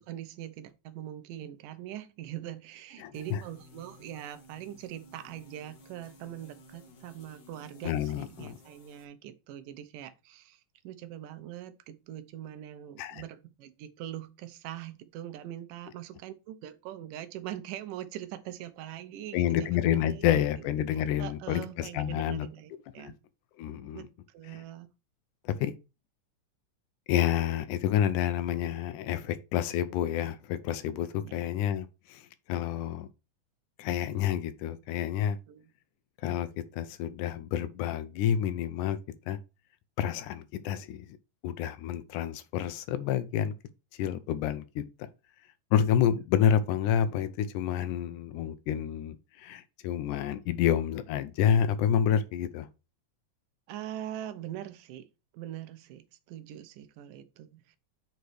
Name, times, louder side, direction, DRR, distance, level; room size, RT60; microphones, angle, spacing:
voice 1, 0.0-20.9 21.2-23.2 23.9-24.9 31.2-31.4 35.5-35.7 53.7-55.1 55.3-57.8, right 12 dB, 85° right, 2.4 m, -42 dB
voice 2, 3.0-3.4 7.8-8.6 13.0-13.2 19.3-22.5 23.0-23.1 23.6-24.1 25.5-25.7 27.1-33.1 33.8-35.4 36.2-36.5 36.7-39.0 39.3-39.4 40.0-41.2 41.4-43.5 44.0-44.8 45.7-52.7, left 9 dB, 80° left, 2.1 m, -29 dB
sound 1, 3.1-9.0, left 1 dB, 60° left, 1.1 m, -55 dB
6.6 x 4.1 x 6.2 m
omnidirectional pair, 3.8 m